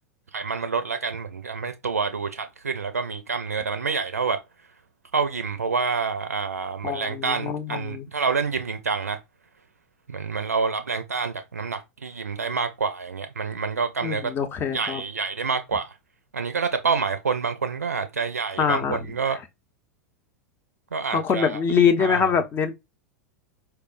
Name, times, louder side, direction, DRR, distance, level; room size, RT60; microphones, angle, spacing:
voice 1, 0.3-4.4 5.1-9.2 10.1-14.3 14.7-16.0 16.3-19.4 20.9-21.6 22.0-22.3, right 5 dB, 80° right, 0.4 m, -27 dB
voice 2, 6.8-8.1 14.0-15.0 18.6-19.0 21.1-22.7, left 6 dB, 25° left, 0.6 m, -23 dB
4.5 x 2.0 x 2.4 m
figure-of-eight pair, 85°, 8 cm